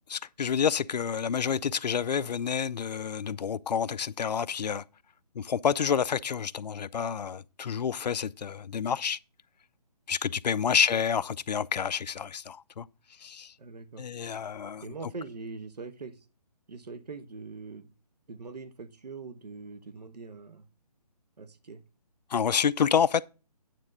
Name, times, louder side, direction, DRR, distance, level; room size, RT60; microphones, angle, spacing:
voice 1, 0.1-4.8 5.4-9.2 10.1-12.9 13.2-13.5 14.0-14.9 22.3-23.2, left 7 dB, 80° left, 0.5 m, -28 dB
voice 2, 10.7-11.0 13.6-14.0 14.8-16.1 16.7-17.9 18.3-20.6 21.4-21.8, right 4 dB, 75° right, 1.1 m, -42 dB
9.3 x 3.7 x 6.5 m
hypercardioid pair, 175°, 21 cm